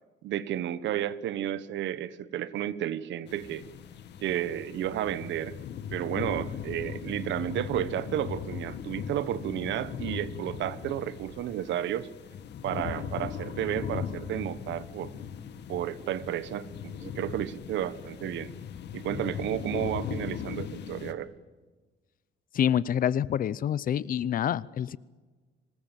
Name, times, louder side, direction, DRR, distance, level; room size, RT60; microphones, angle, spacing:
voice 1, 0.2-3.7 4.2-5.6 5.9-12.1 12.6-15.1 15.7-18.5 18.9-21.3, right 11 dB, 80° right, 17 dB, 1.2 m, -32 dB
sound 1, 3.3-21.1, left 8 dB, 65° left, 1.9 m, -39 dB
voice 2, 22.5-25.0, left 9 dB, 50° left, 21 dB, 0.7 m, -27 dB
25.0 x 20.5 x 7.5 m, 1.3 s
cardioid pair, 150°, 19 cm